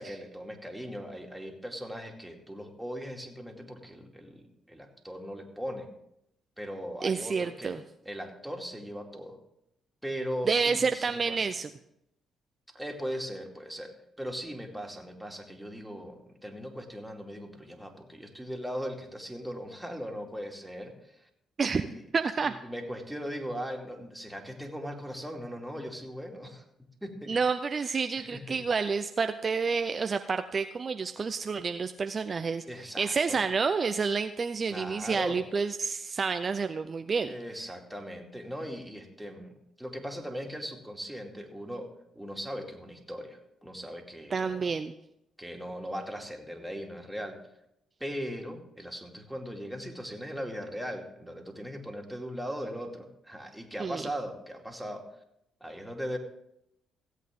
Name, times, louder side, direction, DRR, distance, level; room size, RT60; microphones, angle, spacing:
voice 1, 0.0-5.9 6.6-7.8 8.0-9.4 10.0-11.5 12.7-20.9 21.7-22.0 22.4-26.6 27.0-27.4 27.8-27.9 28.1-28.6 32.6-33.4 34.7-35.4 37.2-41.9 42.1-44.8 45.4-47.4 48.0-55.0 55.6-56.2, equal, 5° right, 1 dB, 2.4 m, -39 dB
voice 2, 7.0-7.8 10.5-11.7 21.6-21.9 22.1-22.5 27.3-37.3 44.3-44.9 53.8-54.1, right 5 dB, 45° right, 8 dB, 0.5 m, -29 dB
16.0 x 8.2 x 3.7 m, 0.81 s
supercardioid pair, 55°, 0 cm